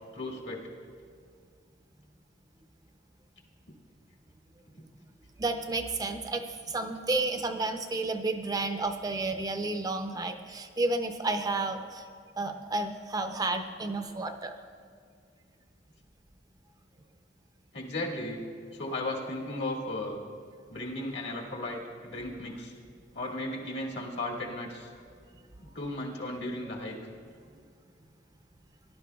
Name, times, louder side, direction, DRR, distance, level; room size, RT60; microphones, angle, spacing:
voice 1, 0.1-0.6 17.7-18.4 18.7-20.2 20.7-22.7 23.1-24.9 25.6-27.0, left 1 dB, 70° left, -1 dB, 1.7 m, -35 dB
voice 2, 5.4-12.0 12.4-14.5, right 2 dB, 20° right, 7 dB, 0.5 m, -31 dB
17.5 x 11.0 x 2.3 m, 2.2 s
head